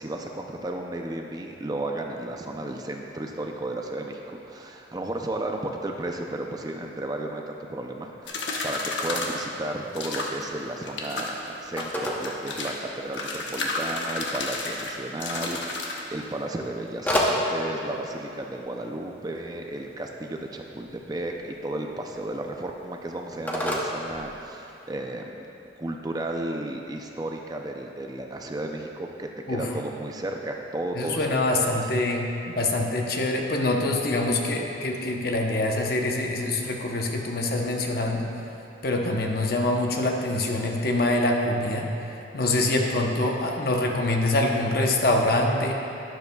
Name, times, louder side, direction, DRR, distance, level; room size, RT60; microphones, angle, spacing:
voice 1, 0.0-25.5 25.8-31.8, right 1 dB, 20° right, 2 dB, 0.4 m, -33 dB
sound 1, 8.3-9.4 9.9-10.4 10.8-11.3 11.8-12.8 13.1-16.0, left 3 dB, 75° left, 1.1 m, -31 dB
Telephone, 10.4-24.9, equal, 10° left, 0.8 m, -35 dB
voice 2, 31.0-38.3 38.8-45.7, left 2 dB, 50° left, 1 dB, 0.8 m, -25 dB
12.0 x 10.5 x 2.3 m, 2.9 s
head